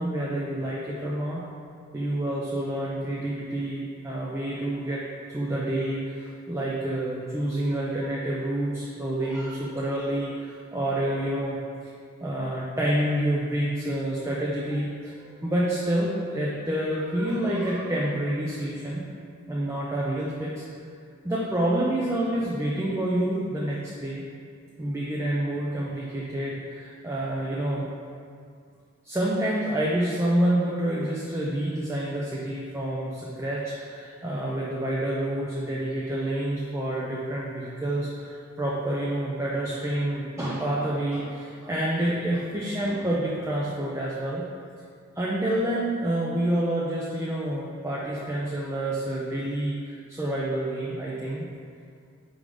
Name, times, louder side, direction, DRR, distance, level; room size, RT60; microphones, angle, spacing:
voice 1, 0.0-1.4 1.9-5.0 5.3-11.6 12.2-19.0 19.5-20.6 21.2-24.2 24.8-27.9 29.0-44.4 45.2-51.5, right 1 dB, 15° right, -5 dB, 0.5 m, -28 dB
5.0 x 3.9 x 4.9 m, 2.3 s
head